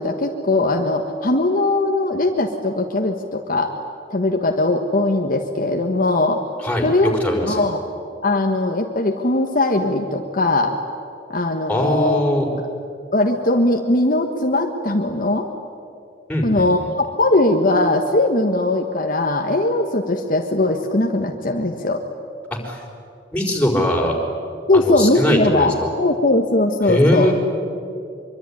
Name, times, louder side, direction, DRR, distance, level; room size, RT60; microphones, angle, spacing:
voice 1, 0.0-3.7 4.1-6.4 6.8-7.8 8.2-10.7 11.3-12.2 13.1-15.5 16.4-22.0 24.7-25.7 26.0-27.3, left 2 dB, 50° left, 3 dB, 1.6 m, -20 dB
voice 2, 6.6-6.9 7.2-7.6 11.7-12.5 16.3-16.9 22.5-22.8 23.3-24.2 24.7-25.7 26.8-27.3, left 1 dB, 10° left, 0 dB, 4.7 m, -20 dB
24.5 x 23.5 x 9.9 m, 2.6 s
head